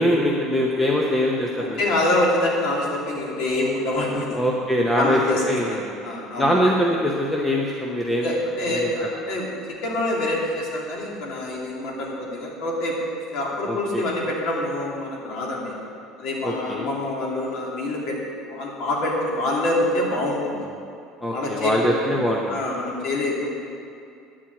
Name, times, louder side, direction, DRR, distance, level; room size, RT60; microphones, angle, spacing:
voice 1, 0.0-1.8 4.3-5.2 5.5-5.8 6.4-8.3 8.7-8.9 13.7-14.1 16.4-16.9 21.2-22.6, equal, 10° left, -2 dB, 0.8 m, -22 dB
voice 2, 1.5-4.4 4.9-5.4 5.7-6.6 8.2-9.6 9.8-12.9 13.3-15.7 16.2-18.2 18.4-20.6 21.3-21.7 22.5-23.5, left 1 dB, 55° left, -3 dB, 2.8 m, -26 dB
10.5 x 7.6 x 8.5 m, 2.5 s
cardioid pair, 170°, 0 cm